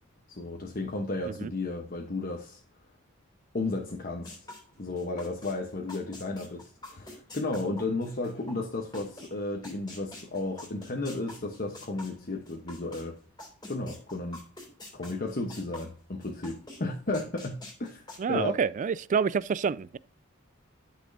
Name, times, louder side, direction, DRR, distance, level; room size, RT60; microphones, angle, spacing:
voice 1, 0.3-2.6 3.5-4.5 4.8-13.1 13.7-14.4 14.9-18.0 18.3-18.5, left 2 dB, 45° left, 1.0 m, -33 dB
sound 1, 4.2-5.5 5.9-9.3 9.6-13.0 13.4-15.9 16.2-16.8 17.1-18.2, left 2 dB, 20° left, 2.9 m, -46 dB
voice 2, 18.2-20.0, right 6 dB, 40° right, 0.3 m, -28 dB
12.0 x 6.1 x 2.7 m
head